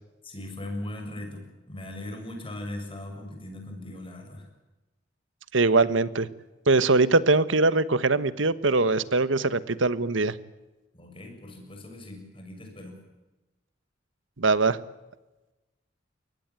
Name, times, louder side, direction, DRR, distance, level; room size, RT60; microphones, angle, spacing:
voice 1, 0.2-4.5 10.9-13.0, left 1 dB, 30° left, 4 dB, 7.1 m, -39 dB
voice 2, 5.5-6.3 6.7-10.3 14.4-14.8, right 3 dB, 75° right, 16 dB, 1.2 m, -22 dB
23.0 x 19.0 x 9.0 m, 1.1 s
head